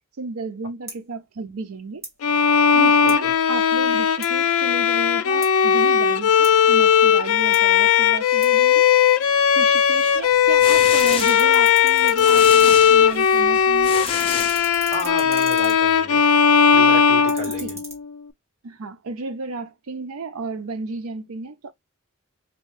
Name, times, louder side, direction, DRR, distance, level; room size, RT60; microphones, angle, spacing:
voice 1, 0.2-2.0 2.7-8.8 9.5-14.0 17.6-17.7 18.6-21.7, right 3 dB, 90° right, 0.6 m, -33 dB
sound 1, 0.9-1.0 1.9-2.2 3.1-3.2 4.2-4.4 5.4-5.6 6.4-6.6 7.5-7.7 8.4-8.5 9.1-9.2 9.9-10.6 10.8-13.5 13.8-15.8 17.1-17.9, right 2 dB, 15° right, 1.2 m, -39 dB
Bowed string instrument, 2.2-18.1, left 7 dB, 85° left, 0.4 m, -17 dB
sound 2, 10.3-15.2, left 6 dB, 25° left, 0.4 m, -31 dB
voice 2, 14.9-16.3 16.7-17.8, left 2 dB, 30° right, 1.7 m, -32 dB
4.3 x 2.2 x 3.1 m
head